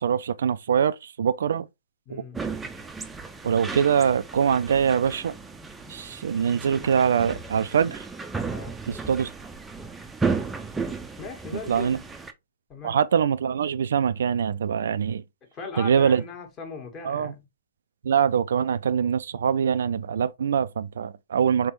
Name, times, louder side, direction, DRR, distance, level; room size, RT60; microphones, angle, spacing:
voice 1, 0.0-1.7 2.1-2.2 3.4-5.3 5.9-8.0 8.9-9.3 11.7-12.0 12.8-15.2 15.8-16.2 17.0-17.3 18.0-21.7, right 7 dB, 65° right, 0.3 m, -23 dB
voice 2, 2.0-2.4 8.4-8.7 11.2-12.1 12.7-13.0 15.5-17.4, left 4 dB, 30° left, 1.4 m, -38 dB
sound 1, 2.3-12.3, right 4 dB, 10° right, 0.5 m, -34 dB
3.6 x 3.4 x 3.0 m
hypercardioid pair, 120°, 0 cm